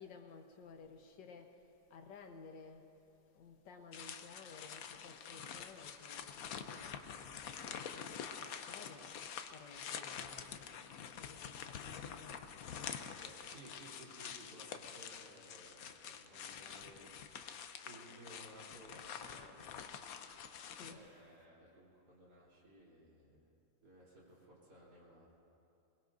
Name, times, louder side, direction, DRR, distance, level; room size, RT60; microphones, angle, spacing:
voice 1, 0.0-1.6 1.9-2.9 3.3-10.7 11.1-12.4 20.7-21.0, left 4 dB, 85° left, 4 dB, 1.8 m, -56 dB
sound 1, 3.9-20.9, left 7 dB, 65° left, 1.1 m, -47 dB
voice 2, 13.2-17.1 17.8-19.7 20.8-23.4 23.8-25.3, right 1 dB, 65° right, -6 dB, 3.9 m, -58 dB
22.0 x 21.0 x 2.6 m, 2.8 s
omnidirectional pair, 1.9 m